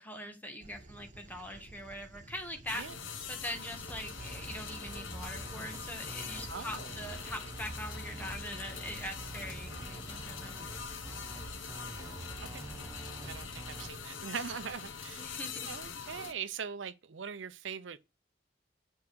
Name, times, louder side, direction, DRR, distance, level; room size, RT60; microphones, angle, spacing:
voice 1, 0.0-2.9 3.3-10.6 15.2-15.7, left 1 dB, 10° left, 1.5 m, -42 dB
Dog, 0.6-14.0, right 1 dB, 40° right, 0.9 m, -54 dB
sound 1, 2.7-16.3, left 6 dB, 85° left, 1.0 m, -44 dB
sound 2, 3.9-13.9, right 2 dB, 20° right, 0.4 m, -46 dB
voice 2, 6.5-6.9 12.4-12.6 13.3-15.3 15.7-18.0, right 7 dB, 75° right, 0.6 m, -41 dB
7.2 x 4.8 x 6.2 m
head